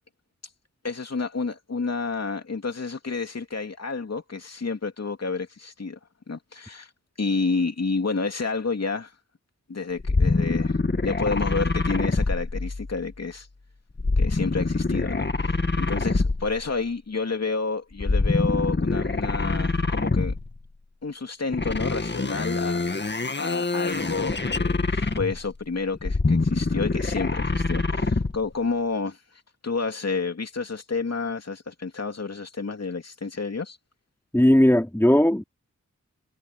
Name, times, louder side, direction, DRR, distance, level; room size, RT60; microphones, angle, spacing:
voice 1, 0.8-6.0 6.3-6.9 7.2-9.1 9.7-13.5 14.2-20.3 21.0-22.8 23.4-29.2 29.6-33.8, left 4 dB, 60° left, 2.9 m, -30 dB
sound 1, 10.0-13.1 14.0-16.7 18.0-20.6 21.5-25.5 25.9-28.4, left 3 dB, 40° left, 1.9 m, -25 dB
voice 2, 34.3-35.4, left 1 dB, 10° left, 4.3 m, -18 dB
cardioid pair, 45°, 29 cm